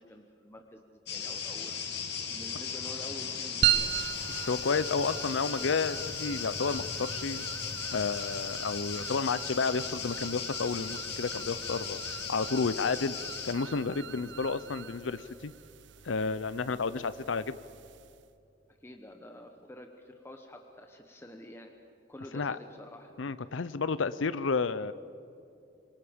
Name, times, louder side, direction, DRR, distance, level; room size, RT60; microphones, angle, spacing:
voice 1, 0.0-1.7 2.3-4.0 16.9-17.1 18.8-21.7 22.1-23.1, left 1 dB, 15° left, 3 dB, 1.0 m, -48 dB
sound 1, 1.1-13.5, left 6 dB, 60° left, 2.2 m, -37 dB
sound 2, 3.6-18.3, right 10 dB, 70° right, 0.8 m, -38 dB
voice 2, 4.3-7.4 7.9-12.0 12.3-13.2 13.4-15.5 16.0-17.6 22.3-22.6 23.2-24.9, left 4 dB, 80° left, 15 dB, 0.6 m, -31 dB
26.5 x 23.0 x 5.2 m, 2.6 s
head